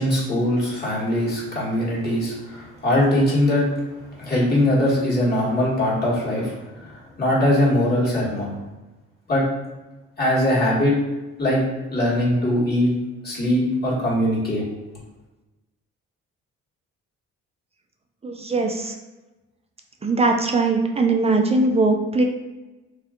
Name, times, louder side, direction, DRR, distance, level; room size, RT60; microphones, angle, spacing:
voice 1, 0.0-3.7 4.1-8.5 9.3-9.4 10.2-10.9 11.4-11.6 11.9-12.9 13.2-14.6, left 1 dB, 30° left, -7 dB, 1.4 m, -21 dB
voice 2, 18.2-18.9 20.0-22.2, right 3 dB, 20° right, 3 dB, 0.4 m, -20 dB
2.7 x 2.3 x 3.5 m, 1.1 s
cardioid pair, 90°, 30 cm